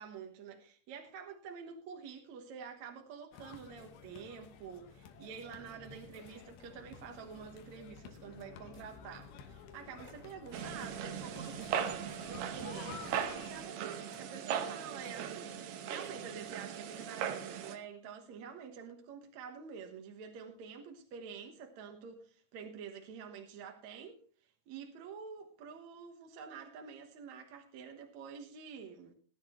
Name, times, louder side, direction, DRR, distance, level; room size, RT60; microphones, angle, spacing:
voice 1, 0.0-24.2 24.7-29.1, right 6 dB, 60° right, 2.2 m, -48 dB
sound 1, 3.3-13.6, left 7 dB, 75° left, 3.1 m, -52 dB
sound 2, 9.5-9.7 10.0-10.4 11.1-11.3 11.6-11.7 12.1-12.4 12.6-12.7 13.0-14.7 15.0-15.6 16.0-16.5 16.9-17.0, right 3 dB, 20° right, 2.4 m, -59 dB
sound 3, 10.5-17.8, right 8 dB, 90° right, 3.1 m, -39 dB
20.0 x 10.5 x 3.1 m
omnidirectional pair, 4.4 m